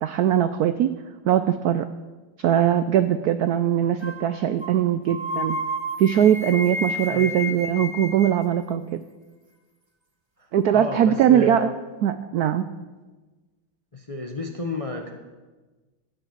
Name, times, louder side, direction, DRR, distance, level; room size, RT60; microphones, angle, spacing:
voice 1, 0.0-0.9 1.2-1.9 2.4-5.6 6.0-9.0 10.5-11.7 12.0-12.7, right 10 dB, 75° right, 12 dB, 0.8 m, -21 dB
sound 1, 4.0-4.3 4.6-4.8 5.1-8.5, left 1 dB, 20° right, 1.0 m, -31 dB
voice 2, 7.1-7.5 10.4-11.7 13.9-15.1, left 2 dB, 35° left, 4 dB, 0.6 m, -32 dB
13.0 x 8.9 x 7.3 m, 1.3 s
omnidirectional pair, 2.2 m